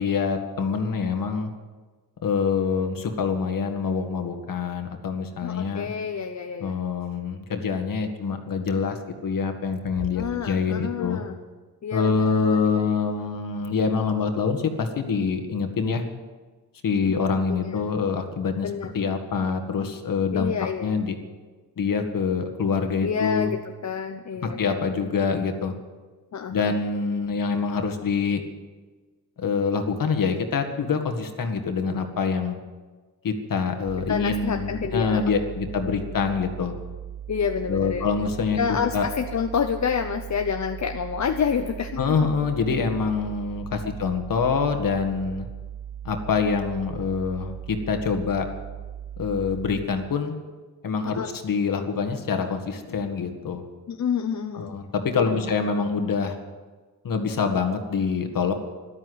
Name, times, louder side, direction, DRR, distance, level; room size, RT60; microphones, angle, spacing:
voice 1, 0.0-1.5 2.2-5.9 6.6-11.2 11.9-16.0 16.8-20.5 20.8-21.2 21.8-23.5 24.4-25.7 26.5-28.4 29.4-32.6 33.2-36.7 37.7-39.1 42.0-45.5 46.0-48.5 49.2-50.3 50.8-53.6 54.5-56.4 57.0-58.5, left 5 dB, 65° left, 6 dB, 2.0 m, -25 dB
voice 2, 5.4-6.8 10.1-11.4 11.8-13.0 17.0-17.2 17.5-17.8 18.6-18.9 20.3-20.9 22.9-25.0 26.3-26.7 34.1-35.2 37.3-38.1 38.6-42.2 43.8-43.9 51.1-51.3 53.9-54.7 55.1-55.5, left 7 dB, 50° left, 6 dB, 0.8 m, -28 dB
sound 1, 33.9-49.9, right 9 dB, 70° right, 1.7 m, -38 dB
13.5 x 12.0 x 8.0 m, 1.3 s
cardioid pair, 115°, 36 cm